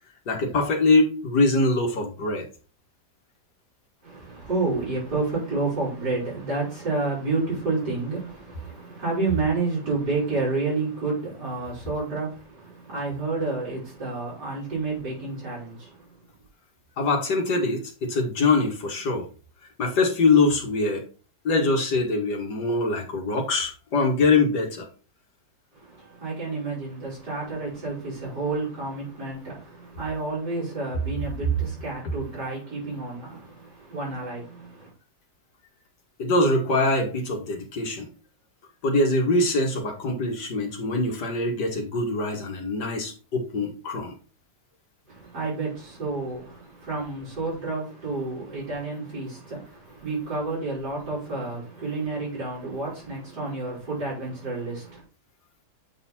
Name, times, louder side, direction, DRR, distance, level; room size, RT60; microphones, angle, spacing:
voice 1, 0.3-2.5 17.0-19.3 19.8-21.0 21.4-24.9 36.2-38.1 38.8-44.2, left 3 dB, 80° left, 2.1 m, -23 dB
voice 2, 4.0-16.1 25.7-34.9 45.1-55.0, right 3 dB, 75° right, 4.8 m, -30 dB
8.1 x 4.0 x 4.3 m
omnidirectional pair, 1.8 m